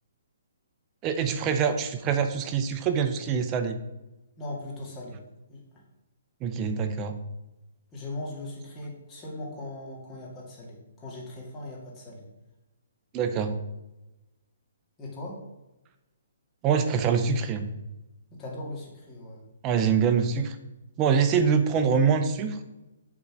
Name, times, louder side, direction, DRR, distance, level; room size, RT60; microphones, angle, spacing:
voice 1, 1.0-3.8 6.4-7.2 13.1-13.5 16.6-17.6 19.6-20.6 21.0-22.6, right 6 dB, 20° right, 8 dB, 0.6 m, -24 dB
voice 2, 4.4-5.2 5.5-5.6 7.9-12.3 15.0-15.4 18.3-19.4, left 1 dB, 15° left, -4 dB, 2.0 m, -39 dB
7.2 x 3.9 x 6.1 m, 0.99 s
hypercardioid pair, 155°, 0 cm